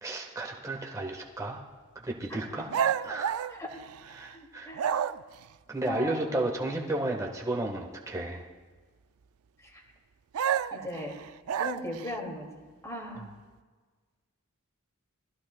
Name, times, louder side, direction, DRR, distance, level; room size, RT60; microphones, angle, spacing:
voice 1, 0.0-1.6 2.0-2.7 3.0-3.4 4.1-5.0 5.7-8.5 13.2-13.3, right 2 dB, 15° right, 0 dB, 1.3 m, -33 dB
voice 2, 2.3-2.6 3.5-3.7 4.3-4.8 5.8-6.3 9.6-9.8 10.7-11.1 11.6-12.4 12.8-13.3, left 1 dB, 15° left, -1 dB, 2.4 m, -38 dB
sound 1, 2.7-4.3 4.7-5.4 10.3-12.1, right 8 dB, 75° right, 0.4 m, -30 dB
20.5 x 15.0 x 2.3 m, 1.4 s
head